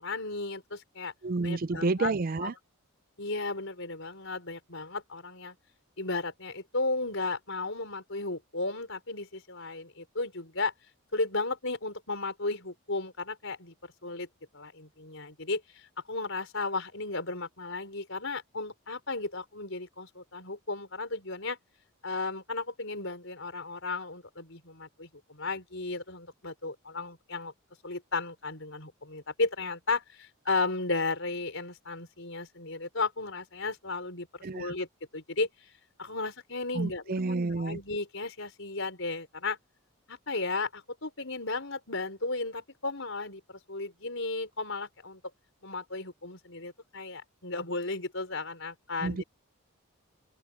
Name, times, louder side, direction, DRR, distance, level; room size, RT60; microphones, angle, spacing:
voice 1, 0.0-1.1 1.4-2.1 2.4-2.5 3.2-5.6 6.0-10.7 11.1-13.7 14.0-14.3 14.5-15.6 16.1-21.6 22.0-27.5 27.8-34.9 35.1-35.5 36.0-37.2 37.6-39.6 40.1-45.2 45.6-49.2, left 3 dB, 60° left, 5.6 m, -34 dB
voice 2, 1.2-2.5 34.4-34.7 36.7-37.8 49.0-49.2, right 3 dB, 40° right, 0.4 m, -30 dB
open air
head